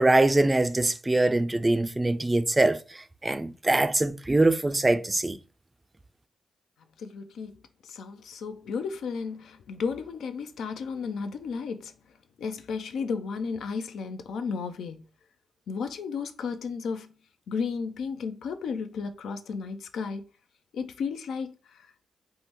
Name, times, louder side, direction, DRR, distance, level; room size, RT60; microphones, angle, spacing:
voice 1, 0.0-5.4, right 2 dB, 25° right, 0.3 m, -23 dB
voice 2, 7.0-11.9 12.4-15.1 15.7-17.1 17.5-20.2 20.7-21.9, left 5 dB, 80° left, 0.3 m, -33 dB
3.4 x 2.1 x 2.8 m
supercardioid pair, 50°, 0 cm